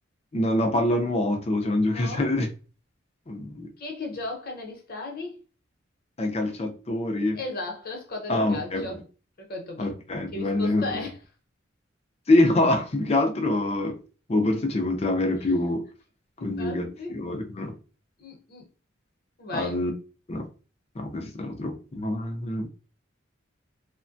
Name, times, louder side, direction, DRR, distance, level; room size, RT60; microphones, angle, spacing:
voice 1, 0.3-2.5 3.3-3.7 6.2-7.4 8.3-9.0 9.8-11.0 12.3-14.0 14.3-15.8 16.4-17.7 19.5-19.9 20.3-20.5 21.0-22.7, left 1 dB, 35° left, 0.5 m, -25 dB
voice 2, 1.9-2.3 3.8-5.3 7.4-9.0 9.4-9.9 10.3-11.2 16.4-17.1 18.2-18.7 19.4-19.8, left 2 dB, 50° left, 0.9 m, -35 dB
3.2 x 2.2 x 2.5 m
head